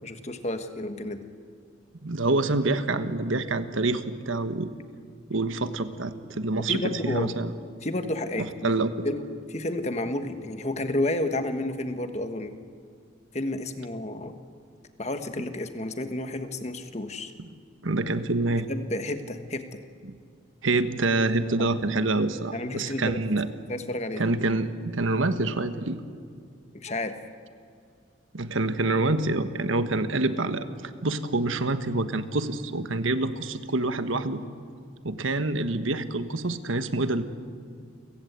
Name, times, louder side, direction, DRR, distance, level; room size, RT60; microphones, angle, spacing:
voice 1, 0.0-1.3 6.7-7.3 7.8-8.7 9.0-12.6 13.3-14.3 15.0-17.3 18.7-19.8 21.6-21.7 22.5-23.2 23.7-24.2 26.7-27.1, left 1 dB, 35° left, 8 dB, 1.4 m, -31 dB
voice 2, 2.0-4.7 5.3-7.5 8.4-9.1 17.8-18.7 20.0-20.2 20.6-23.5 24.2-26.0 28.3-30.7 31.0-34.4 35.0-37.2, right 2 dB, 80° right, 10 dB, 1.3 m, -26 dB
30.0 x 16.5 x 8.2 m, 2.2 s
head